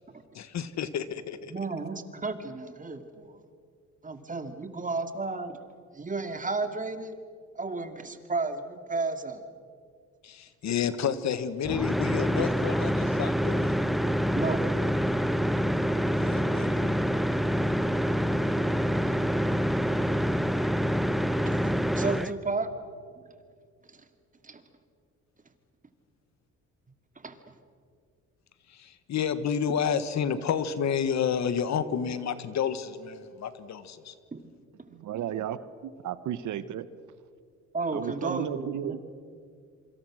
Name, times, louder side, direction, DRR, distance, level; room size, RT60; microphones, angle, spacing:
voice 1, 0.3-1.5 10.2-13.8 16.1-16.8 28.7-34.1, left 7 dB, 65° left, 13 dB, 1.5 m, -30 dB
voice 2, 1.5-3.4 4.0-5.6 5.9-7.1 7.5-9.4 14.4-14.6 19.1-19.2 21.5-22.7 23.1-23.3 23.9-24.0 24.4-24.6 27.2-27.4 34.3-34.4 37.7-39.0, right 3 dB, 25° right, 7 dB, 2.5 m, -33 dB
sound 1, 11.6-22.3, equal, ahead, 0.9 m, -26 dB
voice 3, 34.9-36.9 37.9-39.0, right 10 dB, 75° right, 14 dB, 1.1 m, -34 dB
27.0 x 25.0 x 6.4 m, 2.2 s
cardioid pair, 90°, 30 cm